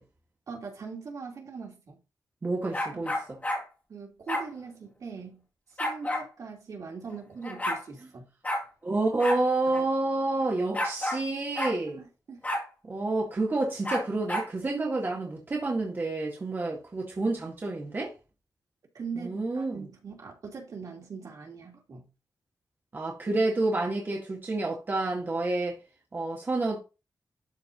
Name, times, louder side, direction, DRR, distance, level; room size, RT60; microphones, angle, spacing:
voice 1, 0.5-2.0 3.9-5.4 5.8-8.2 9.7-9.8 11.9-12.4 18.9-22.0, right 5 dB, 65° right, 2.9 m, -41 dB
voice 2, 2.4-3.4 8.8-12.0 12.8-18.1 19.2-19.9 22.9-25.8 26.1-26.8, right 2 dB, 35° right, 1.8 m, -29 dB
sound 1, 2.7-3.6 4.3-4.5 5.8-6.3 7.1-7.2 7.4-7.8 8.4-8.6 9.2-9.4 9.7-9.8 10.7-11.2 11.6-11.8 12.4-12.7 13.8-14.5, left 1 dB, 25° left, 2.3 m, -30 dB
12.0 x 4.6 x 2.8 m
wide cardioid pair, 155°, 6 cm